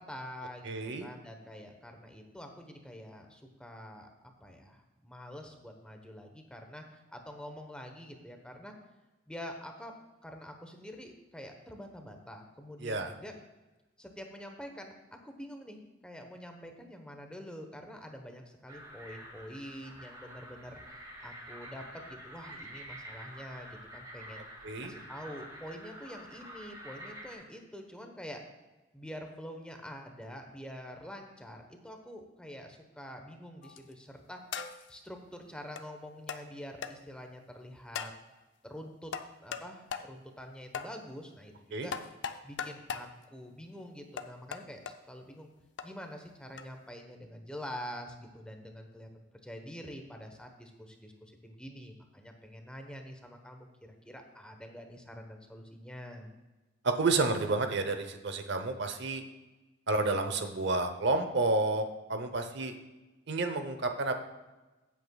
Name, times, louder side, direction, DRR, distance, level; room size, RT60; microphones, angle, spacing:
voice 1, 0.0-4.1 4.4-8.7 9.3-9.9 10.2-13.3 14.0-24.4 24.8-28.4 28.9-34.4 34.9-38.1 38.6-41.9 42.4-45.5 45.8-56.3, equal, 5° left, 4 dB, 1.0 m, -46 dB
voice 2, 0.6-1.1 12.8-13.1 24.6-24.9 41.7-41.9 56.8-59.2 59.9-62.7 63.3-64.1, right 3 dB, 65° right, 7 dB, 0.8 m, -30 dB
sound 1, 18.7-27.4, equal, 20° right, 2.1 m, -48 dB
sound 2, 33.6-33.9 34.5-34.9 35.8-35.9 36.3-36.4 36.8-36.9 37.9-38.2 39.1-39.7 39.9-40.1 40.7-40.9 41.9-43.1 44.2-44.9 45.8-45.9 46.6-46.7, left 6 dB, 65° left, 0.6 m, -38 dB
15.5 x 8.4 x 2.3 m, 1.1 s
head